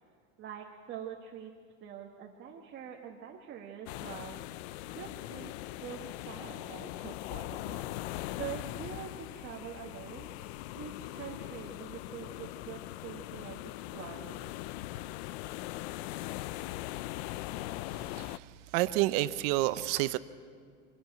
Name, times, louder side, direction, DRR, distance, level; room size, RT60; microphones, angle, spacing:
voice 1, 0.4-1.5 1.8-4.4 4.8-5.5 5.8-8.1 8.4-10.3 10.7-14.5, right 9 dB, 30° right, 0 dB, 1.5 m, -45 dB
sound 1, 3.9-18.4, left 16 dB, 55° left, 0.6 m, -40 dB
voice 2, 18.1-20.2, right 17 dB, 50° right, 15 dB, 0.7 m, -29 dB
24.5 x 13.0 x 9.1 m, 2.1 s
supercardioid pair, 145°, 38 cm